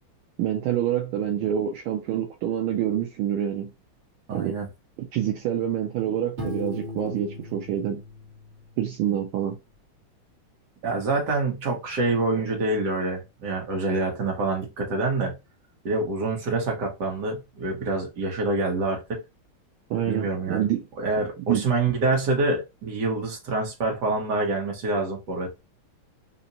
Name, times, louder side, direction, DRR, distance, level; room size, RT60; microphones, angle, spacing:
voice 1, 0.4-3.7 4.3-4.5 5.1-8.0 8.8-9.6 19.9-20.8 21.5-21.6, right 10 dB, 80° right, 1.5 m, -26 dB
voice 2, 4.3-4.7 10.8-15.3 15.9-19.0 20.0-20.7 21.0-25.6, right 3 dB, 55° right, 1.8 m, -26 dB
Piano, 6.4-9.1, left 1 dB, 35° right, 1.5 m, -37 dB
4.0 x 2.5 x 2.7 m
omnidirectional pair, 2.2 m